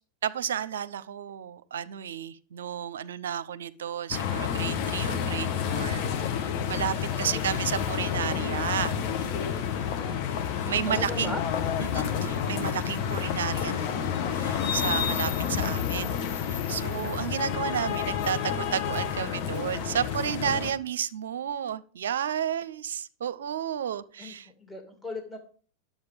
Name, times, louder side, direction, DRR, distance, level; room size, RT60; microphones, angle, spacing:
voice 1, 0.2-6.0 6.3-9.3 10.6-11.4 11.8-24.5, right 8 dB, 75° right, 16 dB, 0.7 m, -32 dB
sound 1, 4.1-20.7, left 8 dB, 55° left, 1.4 m, -29 dB
voice 2, 7.1-7.4 9.9-10.3 10.9-11.4 24.2-24.3 24.6-25.4, left 1 dB, 10° left, 3 dB, 2.5 m, -38 dB
10.5 x 7.3 x 5.2 m, 0.42 s
hypercardioid pair, 95°, 0 cm